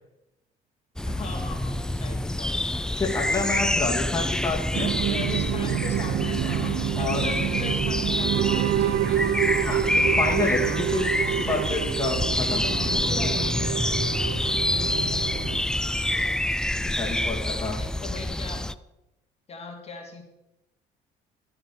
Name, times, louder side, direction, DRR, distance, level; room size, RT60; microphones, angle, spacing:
voice 1, 1.0-3.8 5.0-9.2 12.4-14.4 15.9-18.7 19.5-20.2, left 4 dB, 40° left, 3 dB, 3.0 m, -40 dB
sound 1, 1.0-18.7, left 1 dB, 5° left, 0.4 m, -27 dB
voice 2, 3.0-4.9 7.0-7.2 9.6-13.1 16.9-17.8, left 3 dB, 20° left, -1 dB, 2.5 m, -29 dB
sound 2, 4.7-15.6, right 12 dB, 75° right, 0.6 m, -28 dB
Chuckle chortle, 12.4-16.2, right 2 dB, 30° right, 4.4 m, -46 dB
13.0 x 9.7 x 7.0 m, 0.92 s
cardioid pair, 110°, 17 cm